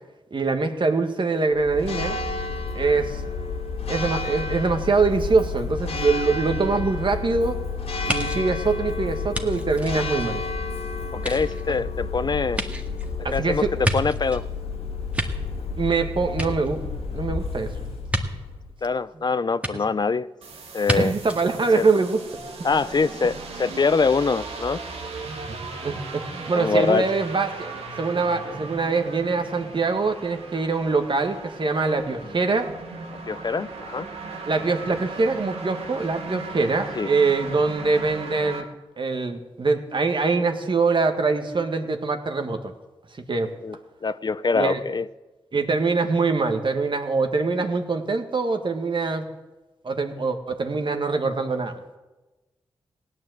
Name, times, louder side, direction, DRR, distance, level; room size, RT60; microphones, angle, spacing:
voice 1, 0.3-2.2 2.7-3.2 3.9-7.6 8.0-10.4 13.2-13.7 15.8-16.8 17.1-17.7 21.0-22.2 25.2-25.4 25.8-27.7 28.0-32.7 34.5-38.7 39.0-42.7 43.3-43.5 44.5-44.8 45.5-49.2 49.8-51.8, right 4 dB, 55° right, 6 dB, 1.8 m, -23 dB
Church bell, 1.5-18.8, left 4 dB, 80° left, 1.8 m, -31 dB
sound 1, 8.1-10.7 11.1-14.5 14.9-16.0 16.3-17.2 18.1-18.2 19.6-19.7 20.8-21.0 21.3-21.4, right 1 dB, 15° right, 1.8 m, -30 dB
voice 2, 11.1-12.6 13.3-14.4 18.8-20.3 20.7-21.1 21.8-21.9 22.6-24.8 26.5-27.0 33.3-34.1 37.0-37.1 43.6-43.8 44.0-45.0, left 4 dB, 45° left, 15 dB, 0.5 m, -24 dB
sound 2, 20.4-38.6, right 3 dB, 85° right, 1.8 m, -37 dB
16.5 x 9.7 x 8.0 m, 1.1 s
cardioid pair, 50°, 10 cm